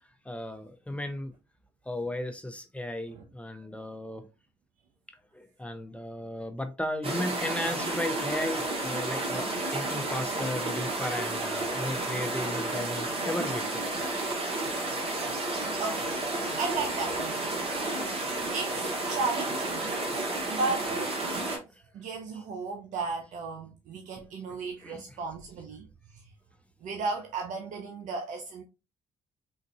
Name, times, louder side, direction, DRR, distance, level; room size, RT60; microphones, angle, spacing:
voice 1, 0.2-1.3 1.8-4.3 5.3-9.5 9.7-13.8 18.8-19.0 21.7-21.8 22.3-22.4 24.5-25.2, left 1 dB, 10° left, 0.6 m, -35 dB
sound 1, 7.0-21.6, right 2 dB, 45° right, 1.5 m, -31 dB
voice 2, 15.8-16.2 16.6-17.6 18.2-20.0 20.5-21.6 21.9-25.9 26.1-26.3 26.8-28.6, right 4 dB, 70° right, 0.6 m, -35 dB
3.8 x 2.6 x 2.6 m
supercardioid pair, 60°, 13 cm